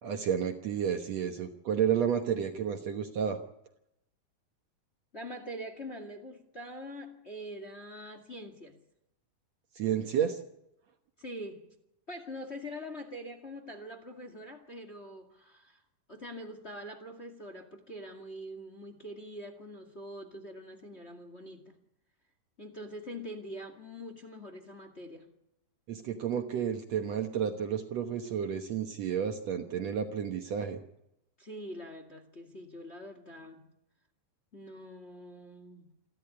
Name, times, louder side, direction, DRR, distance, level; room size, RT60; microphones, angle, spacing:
voice 1, 0.0-3.4 9.8-10.4 25.9-30.8, right 8 dB, 60° right, 6 dB, 2.1 m, -31 dB
voice 2, 5.1-8.8 11.2-11.7 12.1-15.8 16.1-21.7 22.6-25.3 31.4-33.7 34.5-35.9, equal, 25° left, 6 dB, 1.9 m, -44 dB
28.0 x 12.5 x 9.8 m, 0.84 s
omnidirectional pair, 3.9 m